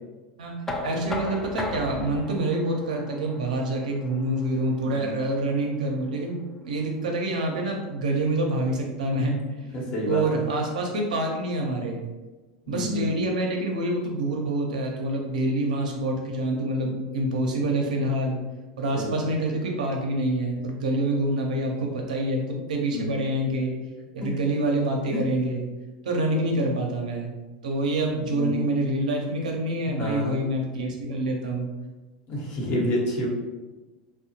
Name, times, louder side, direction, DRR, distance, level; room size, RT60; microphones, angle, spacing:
voice 1, 0.4-6.4 6.6-9.4 10.1-12.0 12.7-18.4 18.8-23.7 24.1-25.6 26.0-27.3 27.6-31.7, right 1 dB, 90° right, 1 dB, 0.5 m, -26 dB
Knock, 0.7-6.5, left 2 dB, 10° left, 0.4 m, -37 dB
voice 2, 9.7-10.4 12.7-13.1 18.9-19.1 22.9-23.1 24.2-24.3 25.1-25.2 28.3-28.6 29.9-30.3 32.3-33.3, left 1 dB, 50° left, -3 dB, 0.9 m, -29 dB
2.7 x 2.1 x 2.8 m, 1.2 s
hypercardioid pair, 105°, 4 cm